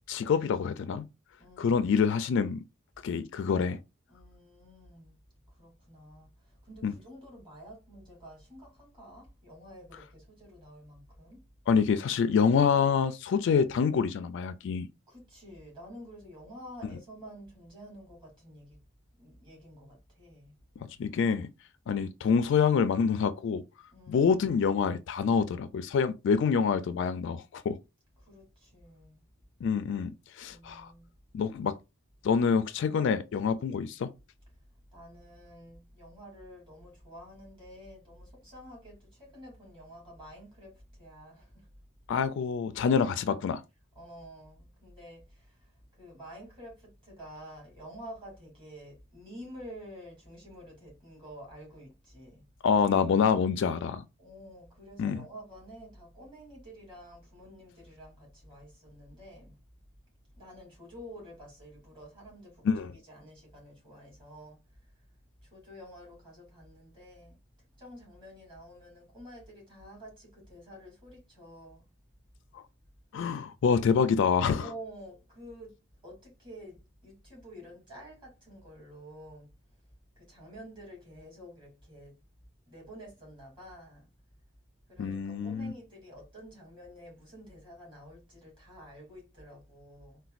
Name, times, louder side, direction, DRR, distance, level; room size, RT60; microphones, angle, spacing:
voice 1, 0.1-1.1 1.6-2.6 3.0-3.8 6.8-6.9 11.7-14.9 21.0-21.5 21.9-23.6 24.1-27.8 29.6-30.1 30.4-30.9 31.3-31.7 32.2-34.1 42.1-43.6 52.6-54.0 55.0-55.2 62.6-62.9 72.5-72.6 73.1-74.7 85.0-85.7, left 6 dB, 65° left, 0.3 m, -26 dB
voice 2, 1.4-1.9 4.1-5.2 5.5-11.4 15.1-18.8 19.1-20.5 23.9-24.3 28.2-29.2 30.4-31.1 34.9-41.7 44.0-52.5 54.2-59.6 60.4-64.8 65.4-67.4 67.8-71.9 73.9-74.0 74.5-75.8 76.0-79.5 80.2-82.2 82.7-84.1 84.9-90.2, equal, 25° right, 2.0 m, -49 dB
4.1 x 2.2 x 2.4 m
head